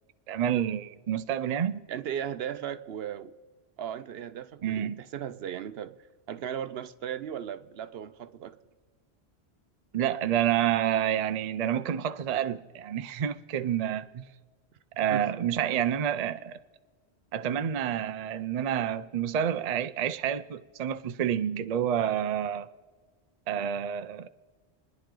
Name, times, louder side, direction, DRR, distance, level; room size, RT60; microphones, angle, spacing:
voice 1, 0.3-1.8 4.6-5.0 9.9-14.2 15.0-16.6 17.3-22.7 23.5-24.3, right 9 dB, 50° right, 0.5 m, -29 dB
voice 2, 1.9-3.3 3.8-5.9 6.3-8.6 15.1-15.3, right 9 dB, 70° right, 0.8 m, -36 dB
29.5 x 10.5 x 3.8 m
omnidirectional pair, 1.1 m